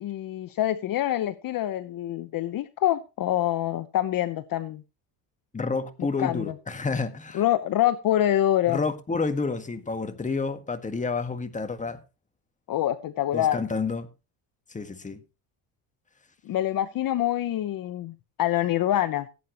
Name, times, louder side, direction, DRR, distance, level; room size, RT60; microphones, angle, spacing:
voice 1, 0.0-4.8 6.2-6.5 7.3-8.8 12.7-13.6 16.5-18.1 18.4-19.3, left 12 dB, 50° left, 0.9 m, -25 dB
voice 2, 5.5-7.4 8.7-12.0 13.3-14.1 14.7-15.2, left 4 dB, 15° left, 1.7 m, -29 dB
17.0 x 8.7 x 3.0 m
cardioid pair, 105°, 44 cm